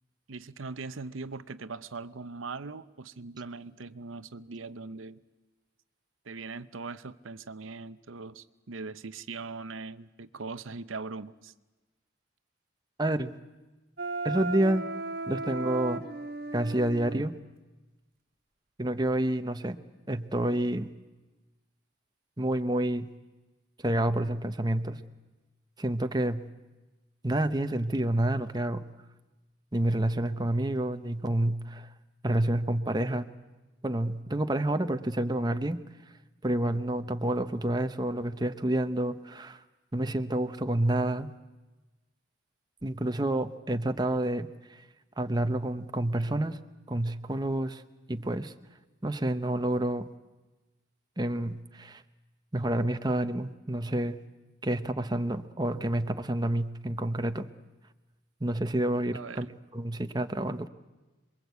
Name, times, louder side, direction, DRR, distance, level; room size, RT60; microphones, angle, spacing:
voice 1, 0.3-5.2 6.2-11.5 59.1-59.5, right 4 dB, 85° right, 13 dB, 0.8 m, -40 dB
voice 2, 13.0-13.3 14.2-14.9 15.3-16.0 16.5-17.3 18.8-19.8 20.1-20.9 22.4-23.1 23.8-25.0 25.8-26.4 27.2-28.8 29.7-31.9 32.2-33.3 33.8-35.8 36.4-39.6 39.9-41.3 42.8-44.8 45.2-46.6 46.9-47.8 48.1-48.5 49.0-50.1 51.2-52.0 52.5-54.2 54.6-57.5 58.4-59.5 59.7-60.7, right 1 dB, 20° right, 8 dB, 0.9 m, -29 dB
Wind instrument woodwind instrument, 14.0-17.2, right 2 dB, 50° right, 1.7 m, -35 dB
27.5 x 22.5 x 8.3 m, 1.1 s
head